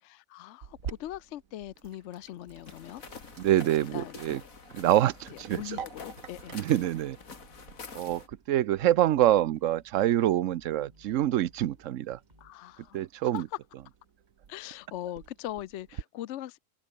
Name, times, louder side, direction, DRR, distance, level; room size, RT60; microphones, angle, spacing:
voice 1, 0.0-3.0 3.9-4.5 5.3-6.6 12.4-13.6 14.5-16.6, left 13 dB, 65° left, 0.9 m, -41 dB
Sink (filling or washing), 0.6-16.0, right 7 dB, 90° right, 1.8 m, -49 dB
sound 1, 2.5-12.5, right 1 dB, 30° right, 8.1 m, -60 dB
sound 2, 2.7-8.3, left 5 dB, 85° left, 2.6 m, -47 dB
voice 2, 3.4-4.4 4.7-5.8 6.5-7.2 7.9-12.2 12.9-13.4, right 13 dB, 70° right, 1.0 m, -26 dB
open air
omnidirectional pair, 1.4 m